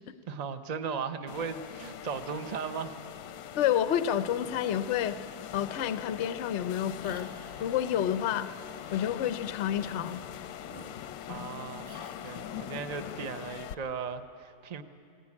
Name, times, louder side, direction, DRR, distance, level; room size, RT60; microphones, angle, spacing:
voice 1, 0.3-3.0 11.3-14.8, right 6 dB, 65° right, 9 dB, 0.4 m, -37 dB
sound 1, 1.3-13.7, left 10 dB, 90° left, 1.5 m, -42 dB
voice 2, 3.6-5.2 5.5-8.5 8.9-10.2, left 10 dB, 65° left, 12 dB, 0.7 m, -29 dB
sound 2, 7.0-8.2 8.8-9.1 9.7-10.2 10.6-11.5 11.8-12.4, right 3 dB, 35° right, 1.1 m, -53 dB
20.5 x 17.0 x 9.7 m, 2.5 s
omnidirectional pair, 2.0 m